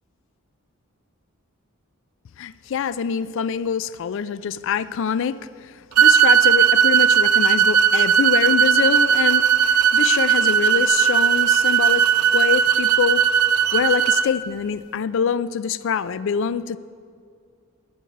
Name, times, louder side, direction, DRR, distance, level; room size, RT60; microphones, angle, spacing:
voice 1, 2.4-12.1 12.3-13.2 13.7-16.8, left 7 dB, 60° left, 17 dB, 0.4 m, -25 dB
sound 1, 6.0-14.3, right 8 dB, 85° right, 0.6 m, -17 dB
11.5 x 8.6 x 6.7 m, 2.2 s
head